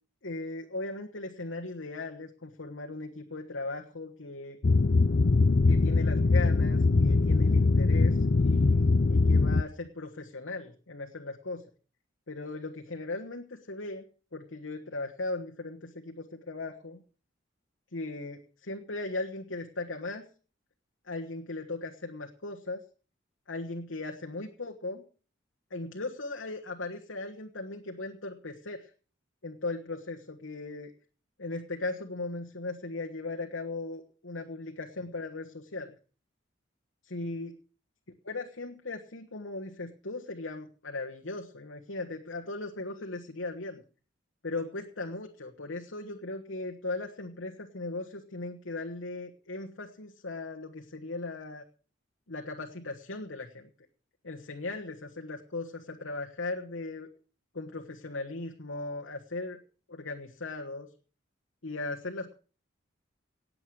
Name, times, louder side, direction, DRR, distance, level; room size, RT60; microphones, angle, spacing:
voice 1, 0.2-4.6 5.7-11.6 12.3-14.0 14.3-17.0 17.9-18.4 18.7-20.3 21.0-22.8 23.5-25.0 25.7-28.9 29.4-30.9 31.4-35.9 37.0-37.6 38.3-43.8 44.4-51.6 52.3-53.7 54.2-57.1 57.5-59.6 59.9-60.9 61.6-62.3, left 2 dB, 75° left, 2 dB, 1.4 m, -38 dB
sound 1, 4.6-9.6, left 3 dB, 50° left, 0.6 m, -22 dB
18.5 x 7.8 x 6.3 m, 0.39 s
head